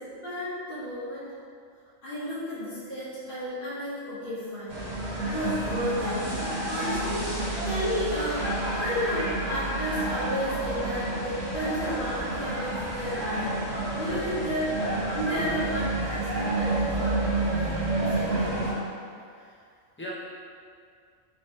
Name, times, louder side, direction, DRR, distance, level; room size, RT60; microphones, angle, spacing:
voice 1, 0.0-1.3 2.0-4.9 5.2-7.2 7.6-13.7 14.0-17.2 17.7-18.7, equal, 45° left, -13 dB, 1.1 m, -33 dB
sound 1, 4.7-18.7, right 2 dB, 35° right, 0.9 m, -29 dB
voice 2, 19.0-20.1, equal, 15° left, -6 dB, 0.4 m, -43 dB
3.3 x 3.1 x 4.2 m, 2.3 s
omnidirectional pair, 1.4 m